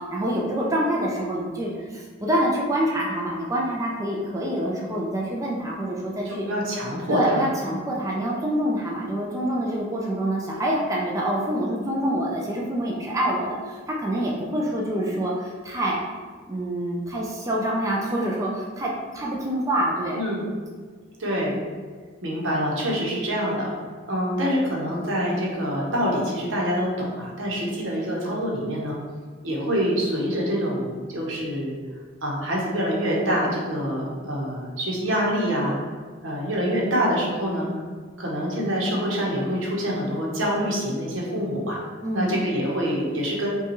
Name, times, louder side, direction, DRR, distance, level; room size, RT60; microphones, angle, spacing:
voice 1, 0.1-6.4 7.1-16.0 16.5-20.2 42.0-42.4, right 1 dB, 15° right, -3 dB, 0.5 m, -26 dB
voice 2, 6.2-7.5 20.1-20.5 21.2-21.6 22.2-23.7 24.1-29.0 29.4-31.8 32.2-35.8 36.2-37.7 38.2-41.8 42.1-43.5, equal, 75° right, -3 dB, 1.0 m, -26 dB
5.5 x 2.3 x 3.0 m, 1.5 s
head